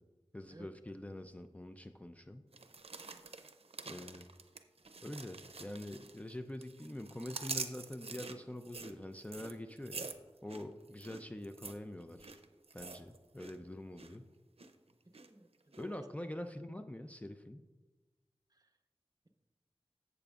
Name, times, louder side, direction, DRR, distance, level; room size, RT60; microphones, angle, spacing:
voice 1, 0.3-2.5 3.9-4.3 5.0-10.1 10.4-12.4 12.7-14.3 15.8-17.6, left 1 dB, 15° left, 7 dB, 0.4 m, -45 dB
sound 1, 2.5-6.3 6.6-13.6 13.8-14.2 14.6-15.3 15.7-15.8, right 4 dB, 80° right, 0.6 m, -46 dB
voice 2, 15.0-16.0 18.5-18.7, right 2 dB, 40° right, 4 dB, 0.9 m, -56 dB
12.0 x 8.1 x 2.4 m, 1.2 s
wide cardioid pair, 55°, 10 cm